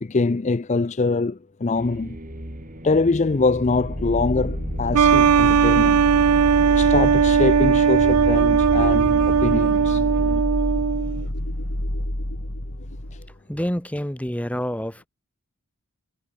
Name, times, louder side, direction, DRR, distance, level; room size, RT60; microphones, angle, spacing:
voice 1, 0.0-2.2 2.8-6.0 6.7-10.0, left 3 dB, 30° left, 0.4 m, -23 dB
sound 1, 1.7-10.4, right 1 dB, 35° right, 3.2 m, -34 dB
sound 2, 3.7-13.3, left 1 dB, 75° left, 4.0 m, -28 dB
sound 3, 4.9-11.2, right 7 dB, 85° right, 0.5 m, -18 dB
voice 2, 13.5-15.1, equal, 5° left, 1.9 m, -27 dB
head